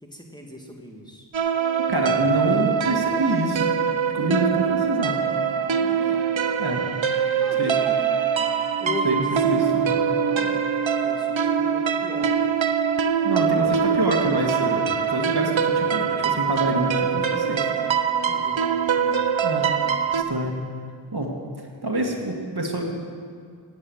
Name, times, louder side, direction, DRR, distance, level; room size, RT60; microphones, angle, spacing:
voice 1, 0.0-1.3 5.8-6.3 7.4-8.2 8.8-10.7 11.0-12.4 18.2-19.3, left 1 dB, 10° left, 0 dB, 2.2 m, -38 dB
sound 1, 1.3-20.2, right 7 dB, 85° right, 0.9 m, -23 dB
voice 2, 1.9-3.7 4.1-5.1 6.6-6.8 7.6-7.7 9.0-9.9 13.2-17.7 19.4-19.7 20.3-20.5 21.1-21.3 21.8-22.8, right 1 dB, 55° right, 1 dB, 2.1 m, -26 dB
17.5 x 8.8 x 7.9 m, 2.2 s
wide cardioid pair, 60°, 45 cm